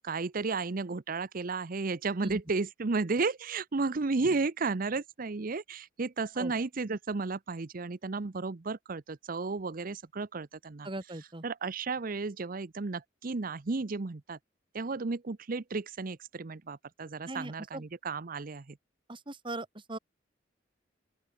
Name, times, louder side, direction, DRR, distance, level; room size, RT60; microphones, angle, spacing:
voice 1, 0.0-10.9 11.4-14.4 14.7-18.8, right 3 dB, 50° right, 0.7 m, -33 dB
voice 2, 10.8-11.4 17.3-17.8 19.1-20.0, right 2 dB, 25° right, 1.8 m, -39 dB
open air
head